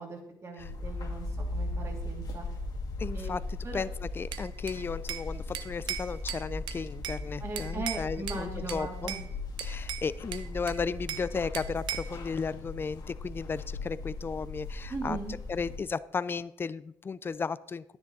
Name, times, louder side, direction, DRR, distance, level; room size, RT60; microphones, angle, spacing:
voice 1, 0.0-2.5 3.1-3.3 3.6-3.8 7.4-9.2 14.9-15.3, right 3 dB, 40° right, 1 dB, 2.7 m, -39 dB
sound 1, 0.6-15.8, left 2 dB, 55° left, 1.8 m, -38 dB
voice 2, 3.0-9.1 9.6-15.2 15.5-18.0, left 5 dB, 30° left, 17 dB, 0.4 m, -35 dB
Bell / Glass, 4.3-5.3 5.5-7.2 7.6-8.4 8.7-9.3 9.6-11.3 11.5-12.2, right 11 dB, 80° right, 0.8 m, -38 dB
10.0 x 9.7 x 4.1 m, 0.75 s
cardioid pair, 95°, 8 cm